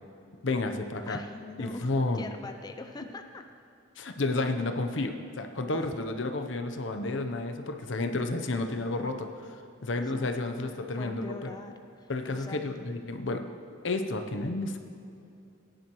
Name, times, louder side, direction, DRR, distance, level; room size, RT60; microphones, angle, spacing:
voice 1, 0.4-1.2 1.6-2.3 4.0-11.5 12.1-13.4 13.8-14.8, left 2 dB, 75° left, 6 dB, 0.8 m, -31 dB
voice 2, 1.1-3.4 5.8-5.9 9.9-12.9, left 2 dB, 20° left, 5 dB, 0.4 m, -44 dB
18.5 x 10.5 x 3.1 m, 2.6 s
head